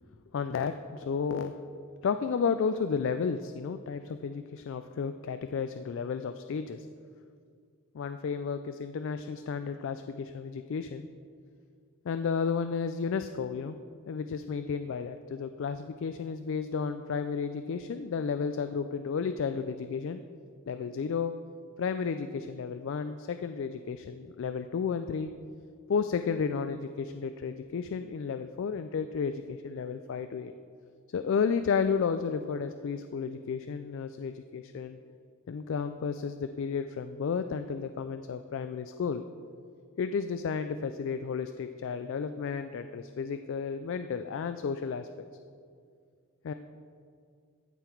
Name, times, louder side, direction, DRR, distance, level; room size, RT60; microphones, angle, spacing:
voice 1, 0.3-1.6 2.0-6.9 7.9-11.1 12.1-13.8 14.1-20.2 20.7-21.3 21.8-25.3 25.9-30.5 31.1-35.0 35.5-39.2 40.0-45.1 46.4-46.5, left 6 dB, 55° left, 9 dB, 0.3 m, -32 dB
15.0 x 5.8 x 4.5 m, 2.2 s
head